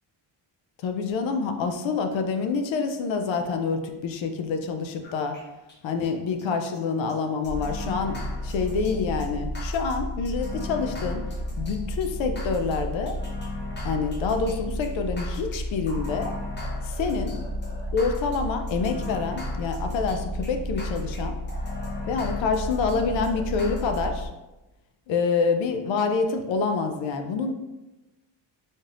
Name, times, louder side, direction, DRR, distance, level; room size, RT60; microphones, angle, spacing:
voice 1, 0.8-5.4 5.8-11.2 11.6-13.2 13.8-16.3 16.8-17.3 17.9-21.4 22.1-24.3 25.1-27.5, left 5 dB, 70° left, 6 dB, 0.6 m, -27 dB
sound 1, 5.0-5.4 5.7-5.8 6.0-6.1 6.4-6.5 6.7-6.8 7.1-7.2 7.4-24.3, left 1 dB, 20° left, 0.8 m, -32 dB
4.1 x 3.3 x 2.4 m, 1.0 s
cardioid pair, 135°, 48 cm